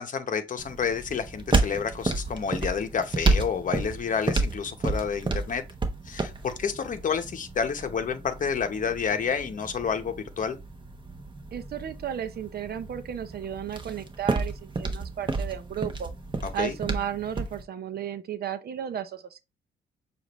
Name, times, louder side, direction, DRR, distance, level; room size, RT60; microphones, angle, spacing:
voice 1, 0.0-5.6 6.0-10.6 16.4-16.8, left 6 dB, 40° left, 0.9 m, -29 dB
sound 1, 0.6-17.6, right 3 dB, 25° right, 0.9 m, -31 dB
voice 2, 11.5-16.1 16.5-19.4, right 9 dB, 55° right, 0.6 m, -34 dB
6.5 x 2.5 x 3.0 m
cardioid pair, 90°, 20 cm